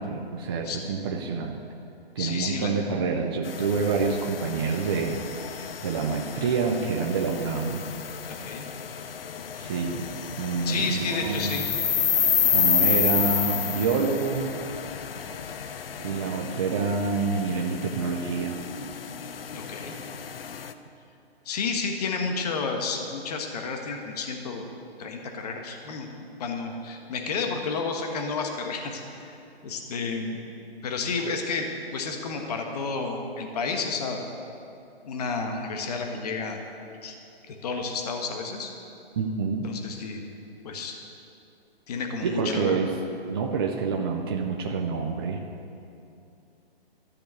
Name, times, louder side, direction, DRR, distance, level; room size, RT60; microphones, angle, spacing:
voice 1, 0.0-1.6 2.2-7.9 9.6-10.1 10.4-11.5 12.2-14.6 16.0-18.6 39.2-39.7 42.2-42.9 43.3-45.4, right 5 dB, 25° right, 1 dB, 0.6 m, -27 dB
voice 2, 2.2-2.8 8.3-8.6 10.6-11.7 12.4-12.6 15.5-15.6 19.5-19.9 21.4-24.7 25.0-26.1 26.4-29.4 29.6-30.4 30.8-34.2 35.0-36.6 37.0-37.1 37.5-38.7 39.6-40.2 40.6-41.0 41.9-42.8, left 4 dB, 40° left, 3 dB, 1.4 m, -31 dB
sound 1, 3.4-20.7, left 7 dB, 65° left, 0.8 m, -30 dB
13.0 x 6.9 x 9.5 m, 2.7 s
hypercardioid pair, 160°, 31 cm